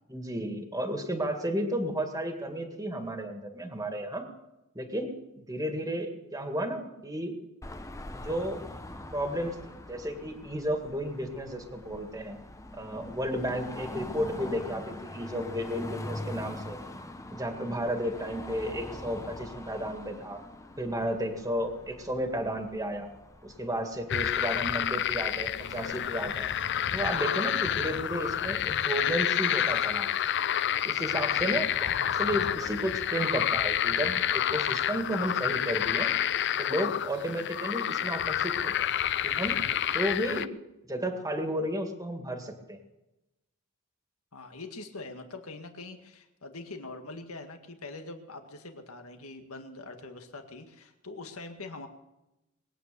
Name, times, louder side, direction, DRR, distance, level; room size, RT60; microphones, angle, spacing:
voice 1, 0.1-4.2 4.7-7.4 8.1-8.6 9.1-12.4 12.7-16.8 17.3-20.4 20.8-23.1 23.4-26.5 26.9-30.1 30.8-31.7 32.0-36.1 36.6-38.9 39.2-39.6 39.9-40.5 40.9-42.8, equal, 15° right, 5 dB, 1.9 m, -33 dB
Car passing by / Traffic noise roadway noise / Engine, 7.6-26.3, left 1 dB, 15° left, 0.8 m, -43 dB
sound 1, 24.1-40.5, left 10 dB, 55° left, 0.6 m, -29 dB
voice 2, 44.3-51.9, left 3 dB, 75° left, 6 dB, 1.8 m, -43 dB
21.5 x 9.3 x 6.8 m, 0.96 s
head